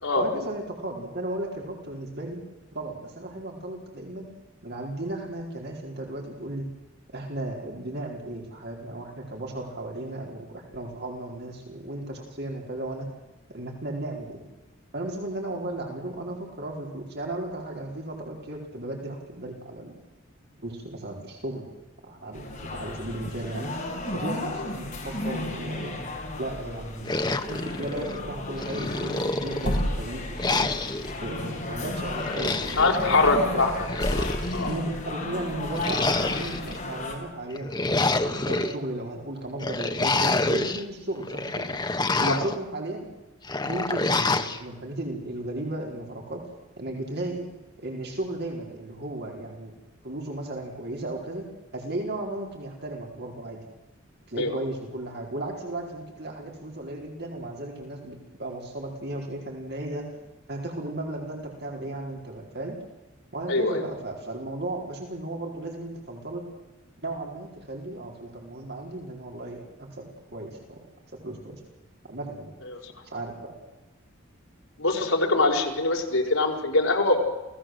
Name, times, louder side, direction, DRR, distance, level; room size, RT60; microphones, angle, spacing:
voice 1, 0.2-2.4 2.7-4.3 4.6-6.7 7.1-13.1 13.5-14.4 14.9-19.9 20.6-21.7 22.0-22.5 22.7-23.8 24.1-25.9 26.4-30.7 31.2-33.7 34.7-37.7 38.2-41.7 42.2-43.1 43.6-46.4 46.8-47.5 47.8-49.7 50.0-51.5 51.7-53.6 54.3-60.1 60.5-62.8 63.3-66.4 67.0-70.8 71.2-71.6 72.1-72.5 73.1-73.5, right 1 dB, 50° right, 0 dB, 4.4 m, -35 dB
sound 1, 22.3-37.2, left 1 dB, 40° left, 6.1 m, -33 dB
sound 2, 27.0-28.2 28.6-29.8 30.4-31.1 32.2-32.9 33.7-34.7 35.7-36.8 37.5-38.7 39.6-40.8 41.2-42.6 43.4-44.6, left 3 dB, 20° left, 1.2 m, -27 dB
voice 2, 32.8-33.7 34.1-34.7 42.3-42.4 54.4-54.5 63.5-63.8 72.7-72.8 74.8-77.2, left 2 dB, 75° left, 1 dB, 4.9 m, -23 dB
28.5 x 18.5 x 7.8 m, 1.1 s
head